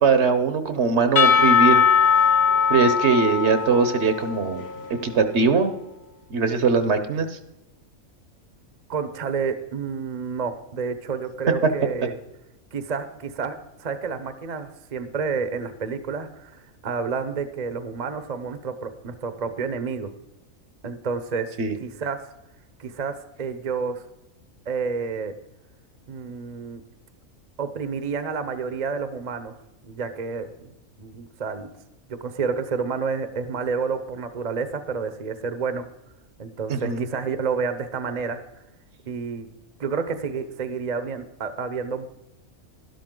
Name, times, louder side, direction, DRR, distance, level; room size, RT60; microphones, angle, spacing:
voice 1, 0.0-1.8 2.7-4.6 5.0-5.7 6.3-7.3 21.6-21.7 36.7-37.0, right 5 dB, 55° right, 9 dB, 1.1 m, -21 dB
Percussion / Church bell, 1.2-5.1, left 6 dB, 55° left, 1.0 m, -20 dB
voice 2, 8.9-12.1 12.7-20.1 20.8-21.5 21.8-22.2 22.8-24.0 24.7-25.3 26.1-26.8 27.6-29.5 29.9-30.7 31.0-31.7 32.1-35.8 36.4-38.4 39.1-39.5 39.8-42.1, right 5 dB, 35° right, 10 dB, 0.8 m, -29 dB
12.5 x 11.5 x 3.8 m, 0.91 s
omnidirectional pair, 1.5 m